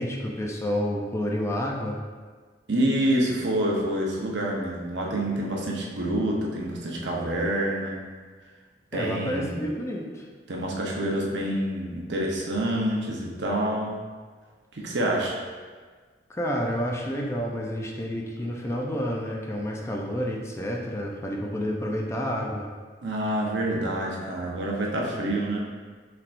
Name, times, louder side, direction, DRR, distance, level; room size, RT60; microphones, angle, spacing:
voice 1, 0.0-2.0 8.9-10.3 16.3-22.7, equal, 15° left, -1 dB, 0.4 m, -29 dB
voice 2, 2.7-8.0 8.9-9.6 10.5-14.0 14.7-15.4 23.0-25.6, right 1 dB, 80° right, -2 dB, 0.8 m, -27 dB
5.6 x 3.4 x 2.5 m, 1.5 s
head